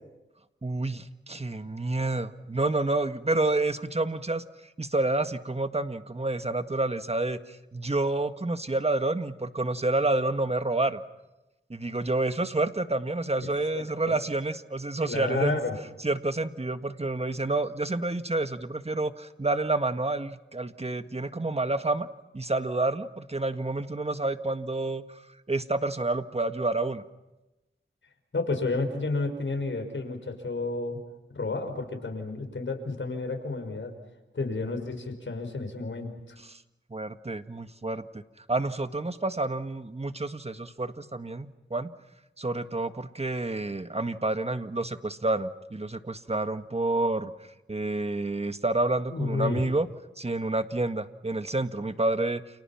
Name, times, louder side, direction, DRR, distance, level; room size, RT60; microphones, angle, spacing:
voice 1, 0.6-4.4 4.8-11.0 11.7-15.6 16.0-22.1 22.3-25.2 25.5-27.0 36.5-36.6 36.9-38.2 38.5-41.9 42.4-47.3 47.7-49.9 50.2-52.4, right 2 dB, 30° right, 9 dB, 1.7 m, -29 dB
voice 2, 13.7-14.2 15.0-15.8 28.3-31.0 31.3-33.9 34.3-36.4 49.1-49.7, left 3 dB, 70° left, 5 dB, 5.4 m, -31 dB
29.5 x 29.5 x 5.9 m, 1.0 s
wide cardioid pair, 55°, 20 cm